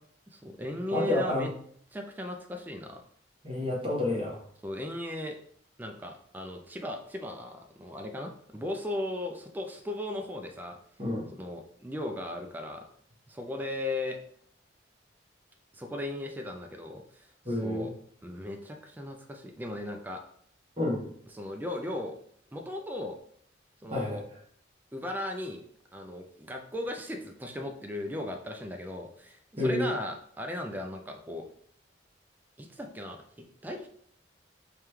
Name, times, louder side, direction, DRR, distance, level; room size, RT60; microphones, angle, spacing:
voice 1, 0.3-1.5 1.9-3.0 4.6-5.4 5.8-10.8 11.3-12.9 13.3-14.2 15.7-17.9 18.2-20.2 21.3-22.1 22.5-23.2 23.8-24.2 24.9-25.6 25.9-31.5 32.6-33.9, left 1 dB, 10° right, 3 dB, 0.3 m, -37 dB
voice 2, 0.9-1.5 3.4-4.4 11.0-11.3 17.4-17.9 20.8-21.0 23.9-24.2 29.6-29.9, left 1 dB, 30° right, -3 dB, 1.0 m, -29 dB
5.0 x 2.3 x 3.0 m, 0.63 s
head